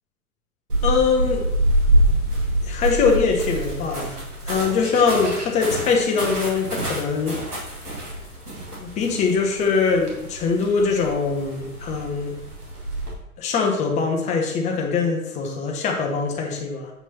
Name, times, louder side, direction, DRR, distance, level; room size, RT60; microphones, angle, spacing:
sound 1, 0.7-13.1, right 1 dB, 85° right, 2.0 m, -26 dB
voice 1, 0.8-1.4 2.6-4.2 4.5-7.4 8.8-12.3 13.4-16.9, left 5 dB, 15° left, 2 dB, 0.8 m, -22 dB
7.8 x 4.5 x 2.8 m, 0.86 s
figure-of-eight pair, 105°, 45 cm